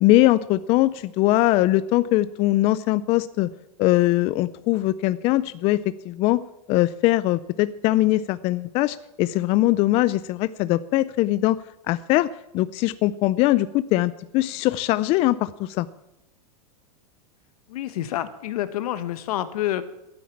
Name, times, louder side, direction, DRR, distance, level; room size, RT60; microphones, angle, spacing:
voice 1, 0.0-3.5 3.8-6.4 6.7-11.6 11.9-12.3 12.5-15.9, left 16 dB, 30° left, 15 dB, 0.4 m, -21 dB
voice 2, 17.7-19.8, left 13 dB, 70° left, 12 dB, 1.4 m, -28 dB
12.5 x 9.4 x 8.6 m, 0.90 s
supercardioid pair, 145°, 20 cm